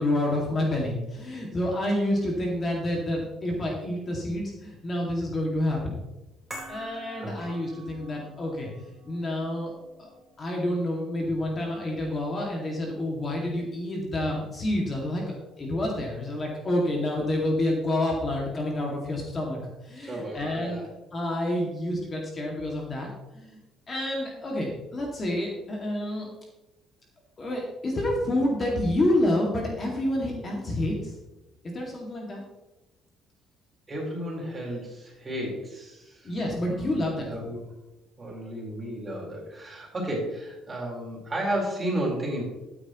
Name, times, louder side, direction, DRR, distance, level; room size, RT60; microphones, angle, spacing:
voice 1, 0.0-6.0 6.7-9.7 10.0-10.1 10.4-19.6 19.8-20.8 21.1-23.1 23.3-23.6 23.9-26.3 27.4-31.1 31.6-32.4 36.2-37.5, left 1 dB, 30° left, -1 dB, 2.1 m, -28 dB
sound 1, 6.5-12.9 13.2-13.3, right 2 dB, 5° right, 4.3 m, -47 dB
voice 2, 20.0-20.9 33.9-36.3 36.7-37.6 38.2-42.4, right 1 dB, 20° right, -2 dB, 4.1 m, -33 dB
13.0 x 9.3 x 3.0 m, 1.0 s
cardioid pair, 125°, 0 cm